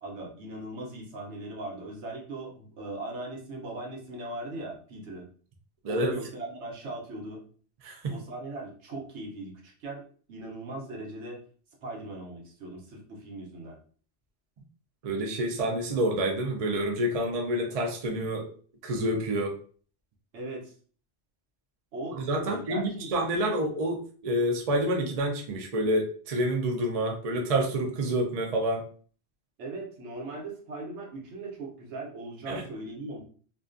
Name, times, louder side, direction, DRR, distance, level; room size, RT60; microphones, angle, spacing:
voice 1, 0.0-5.3 5.9-7.4 8.1-10.0 10.3-11.4 11.8-13.8 20.3-20.7 21.9-23.1 29.6-33.2, right 2 dB, 75° right, -1 dB, 1.0 m, -39 dB
voice 2, 15.0-18.5 18.8-19.6 22.1-28.8 32.5-32.6, right 1 dB, 50° right, 2 dB, 0.4 m, -28 dB
2.5 x 2.2 x 2.4 m, 0.43 s
omnidirectional pair, 1.2 m